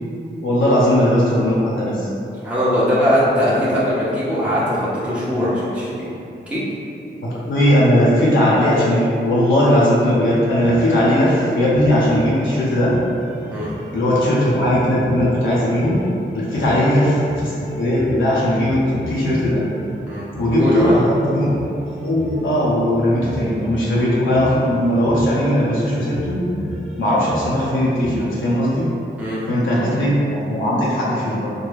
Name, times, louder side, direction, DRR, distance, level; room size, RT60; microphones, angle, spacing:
voice 1, 0.4-2.1 3.2-3.4 7.2-12.9 13.9-16.0 16.3-19.6 20.4-21.5 21.8-26.4 27.0-28.9 29.5-31.5, equal, 75° left, -8 dB, 0.6 m, -18 dB
voice 2, 2.4-6.1 6.5-6.6 13.5-13.7 16.6-16.8 20.1-20.2 20.6-20.9 29.2-29.4, equal, 5° right, -10 dB, 0.8 m, -20 dB
sound 1, 10.2-28.6, equal, 80° right, 1.1 m, -34 dB
3.3 x 2.2 x 3.3 m, 2.7 s
cardioid pair, 50°, 20 cm